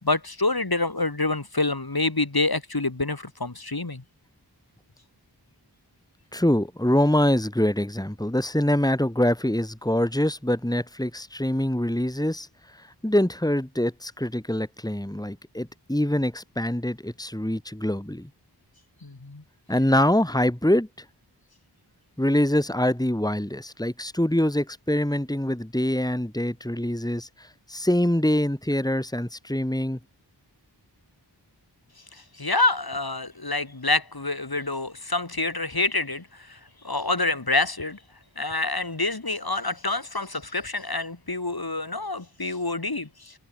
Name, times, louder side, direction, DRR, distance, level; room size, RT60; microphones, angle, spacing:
voice 1, 0.0-4.0 19.0-19.4 32.1-36.6 36.8-38.0 38.4-43.3, left 2 dB, 60° left, 5.1 m, -27 dB
voice 2, 6.3-18.3 19.7-21.0 22.2-30.0, left 1 dB, 10° left, 3.2 m, -24 dB
wide cardioid pair, 45°, 42 cm